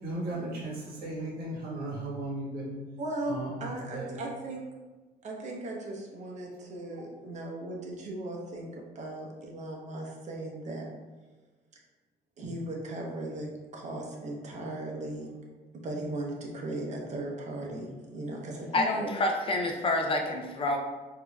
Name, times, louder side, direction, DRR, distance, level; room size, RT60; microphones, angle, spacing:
voice 1, 0.0-2.7 3.3-4.2 6.8-7.0, right 2 dB, 65° right, -5 dB, 1.3 m, -36 dB
voice 2, 3.0-4.6 5.2-10.9 12.4-15.3 15.8-19.1, right 1 dB, 45° right, -1 dB, 0.8 m, -37 dB
voice 3, 18.7-20.8, left 2 dB, 35° left, 2 dB, 0.4 m, -28 dB
4.1 x 2.7 x 2.3 m, 1.2 s
cardioid pair, 110°, 17 cm